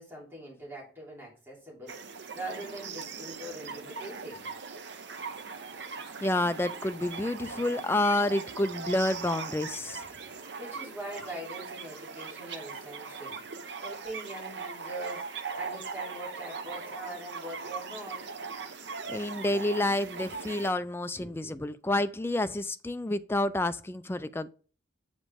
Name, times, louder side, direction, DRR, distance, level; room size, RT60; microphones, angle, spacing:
voice 1, 0.0-4.5 10.2-10.3 10.6-18.2 21.2-21.6, right 1 dB, 10° right, 3.0 m, -43 dB
sound 1, 1.9-20.7, right 5 dB, 60° right, 0.8 m, -40 dB
voice 2, 6.2-10.1 19.1-24.5, left 1 dB, 10° left, 0.3 m, -29 dB
8.4 x 5.1 x 3.5 m
head